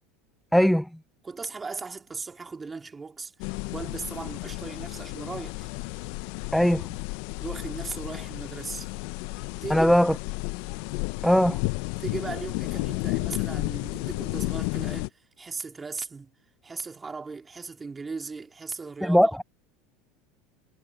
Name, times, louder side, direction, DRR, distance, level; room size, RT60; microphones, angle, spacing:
voice 1, 0.5-0.9 6.5-7.0 9.7-10.2 11.2-11.6 19.0-19.3, equal, ahead, 0.3 m, -20 dB
voice 2, 1.2-5.8 7.4-8.9 9.6-9.9 12.0-16.3 16.6-19.4, right 4 dB, 20° right, 2.5 m, -37 dB
sound 1, 3.4-15.1, left 26 dB, 65° left, 0.6 m, -32 dB
hypercardioid pair, 90°, 0 cm